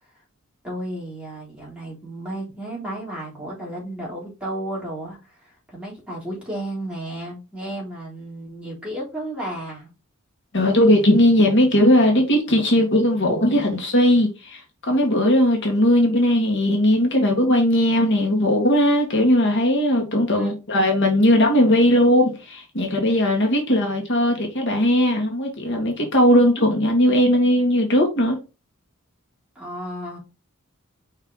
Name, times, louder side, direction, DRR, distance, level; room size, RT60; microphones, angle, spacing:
voice 1, 0.6-9.9 20.3-20.5 29.6-30.2, right 1 dB, 5° right, 3.5 m, -33 dB
voice 2, 10.5-14.6 14.9-28.4, left 1 dB, 60° left, 2.0 m, -18 dB
5.6 x 4.6 x 4.0 m
head